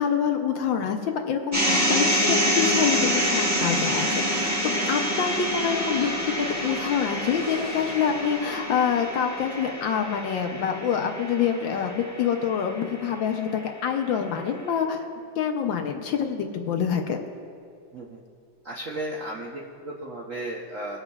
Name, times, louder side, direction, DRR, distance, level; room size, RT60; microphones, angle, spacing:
voice 1, 0.0-6.1 6.4-15.0 15.4-17.2, left 7 dB, 70° left, 4 dB, 1.3 m, -26 dB
sound 1, 1.5-13.7, equal, 20° right, 0.4 m, -27 dB
sound 2, 1.9-12.6, right 3 dB, 75° right, 1.8 m, -41 dB
sound 3, 4.2-11.9, left 3 dB, 55° left, 2.6 m, -42 dB
voice 2, 18.6-21.0, right 1 dB, 60° right, -4 dB, 0.8 m, -35 dB
20.5 x 7.8 x 2.3 m, 2.3 s
omnidirectional pair, 2.4 m